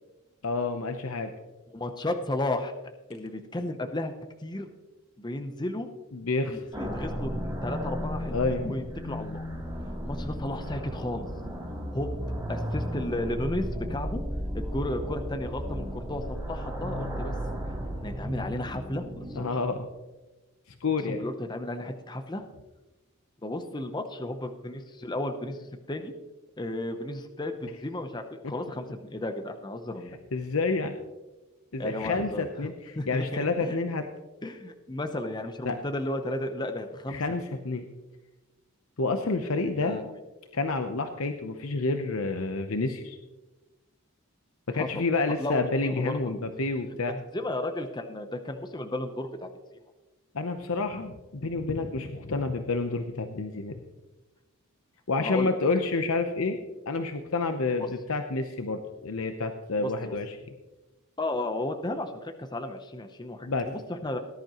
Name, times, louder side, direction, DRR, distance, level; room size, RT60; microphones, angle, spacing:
voice 1, 0.4-1.3 6.1-6.6 8.3-8.7 19.4-19.9 20.8-21.3 30.3-31.0 31.7-34.1 35.6-35.8 37.1-37.9 39.0-40.0 40.5-43.2 44.7-47.1 50.3-53.8 55.1-56.6 56.9-60.4 63.4-63.7, left 3 dB, 70° left, 6 dB, 0.8 m, -29 dB
voice 2, 1.7-2.7 3.1-4.1 4.4-4.7 5.2-5.9 6.5-9.5 10.0-11.3 11.9-12.1 12.5-14.2 14.5-17.3 18.0-19.6 21.1-22.5 23.4-26.1 26.6-28.8 29.1-30.2 31.8-32.5 33.0-33.8 34.4-37.2 39.7-40.1 44.7-45.0 45.4-46.1 47.1-49.8 55.2-55.6 57.8-57.9 59.8-60.1 61.2-64.2, left 1 dB, 20° left, 6 dB, 0.7 m, -34 dB
sound 1, 6.7-19.8, equal, 15° right, 2.9 m, -34 dB
18.5 x 11.0 x 3.0 m, 1.1 s
head